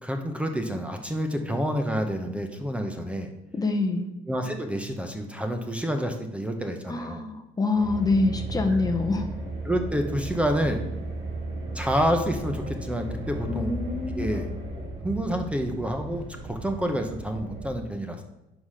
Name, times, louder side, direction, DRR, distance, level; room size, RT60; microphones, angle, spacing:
voice 1, 0.0-3.3 4.3-7.2 9.6-10.8 11.7-13.7 14.1-14.5 14.7-18.2, equal, 5° right, 4 dB, 0.7 m, -28 dB
voice 2, 3.5-4.1 6.9-9.3 13.5-14.3, left 3 dB, 20° left, 5 dB, 0.7 m, -26 dB
sound 1, 7.7-17.7, right 1 dB, 90° right, 1.8 m, -35 dB
5.0 x 4.9 x 5.7 m, 0.91 s
cardioid pair, 110°, 17 cm